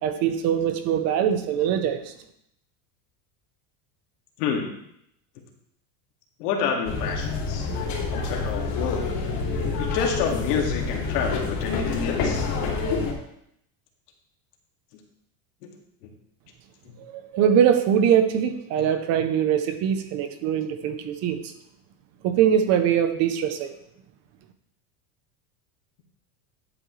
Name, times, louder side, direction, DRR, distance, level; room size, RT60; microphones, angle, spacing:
voice 1, 0.0-2.1 17.0-21.5 22.2-23.7, right 9 dB, 35° right, 9 dB, 0.6 m, -22 dB
voice 2, 4.4-4.7 6.4-7.7 8.1-9.1 9.8-12.5 18.8-18.9, left 6 dB, 80° left, 1 dB, 2.2 m, -28 dB
sound 1, 6.8-13.1, left 4 dB, 50° left, 2.7 m, -27 dB
11.0 x 8.4 x 3.2 m, 0.75 s
supercardioid pair, 170°, 46 cm